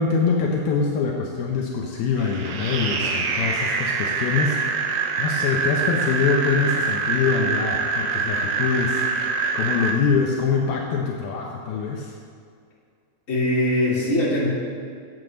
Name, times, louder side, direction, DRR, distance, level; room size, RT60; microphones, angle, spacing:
voice 1, 0.0-12.1, left 5 dB, 75° left, 0 dB, 2.6 m, -24 dB
sound 1, 2.2-9.9, right 4 dB, 85° right, 2.9 m, -25 dB
voice 2, 13.3-14.5, left 1 dB, 20° left, -8 dB, 3.0 m, -21 dB
9.1 x 8.2 x 6.5 m, 2.2 s
omnidirectional pair, 4.5 m